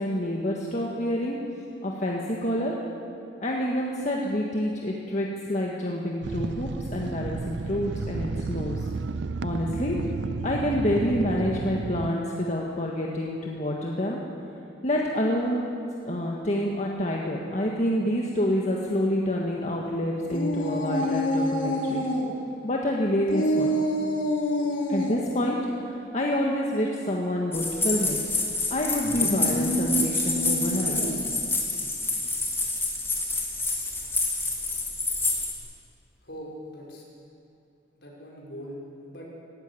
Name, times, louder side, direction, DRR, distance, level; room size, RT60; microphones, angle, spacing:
voice 1, 0.0-1.4 1.8-2.7 3.4-8.9 9.4-10.0 10.4-14.2 14.8-15.6 16.0-22.0 22.6-23.8 24.9-28.2 28.7-31.0, left 1 dB, 40° left, -2 dB, 1.7 m, -27 dB
sound 1, 6.2-12.1, right 4 dB, 65° right, 0.5 m, -32 dB
sound 2, 20.3-22.3 23.3-25.2 29.0-31.3, equal, 80° left, 2.9 m, -27 dB
sound 3, 27.5-35.5, left 3 dB, 15° left, 2.7 m, -28 dB
voice 2, 36.2-37.0 38.0-39.2, equal, 65° left, -3 dB, 5.8 m, -41 dB
18.5 x 16.0 x 9.9 m, 2.6 s
head